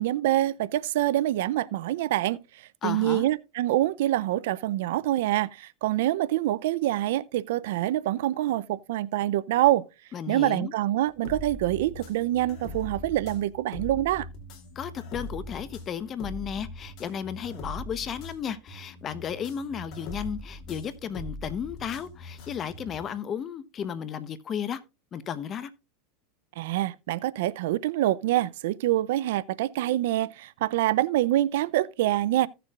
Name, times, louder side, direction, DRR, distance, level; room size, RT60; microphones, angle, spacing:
voice 1, 0.0-2.4 2.8-9.8 10.3-14.3 26.6-32.5, right 14 dB, 75° right, 0.4 m, -25 dB
voice 2, 2.8-3.2 10.1-10.7 14.8-24.8 25.1-25.7, left 8 dB, 30° left, 0.9 m, -34 dB
sound 1, 11.1-23.1, left 1 dB, 50° left, 2.8 m, -41 dB
16.0 x 6.8 x 2.4 m
supercardioid pair, 120°, 0 cm